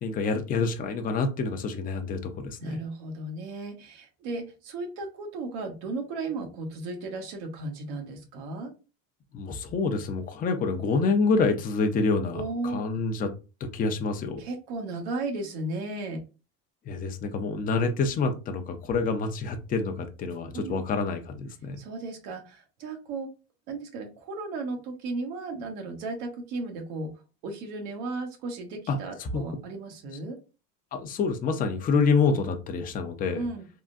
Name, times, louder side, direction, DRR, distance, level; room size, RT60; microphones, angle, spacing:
voice 1, 0.0-2.8 9.3-13.3 13.6-14.4 16.9-21.8 28.9-29.4 30.9-33.4, left 4 dB, 25° left, 6 dB, 0.5 m, -27 dB
voice 2, 2.6-8.7 12.3-12.8 14.4-16.2 20.5-20.8 21.8-23.3 23.7-27.1 27.4-30.4 33.3-33.7, right 2 dB, 85° right, 4 dB, 1.1 m, -35 dB
3.6 x 2.1 x 2.5 m, 0.31 s
cardioid pair, 130°, 32 cm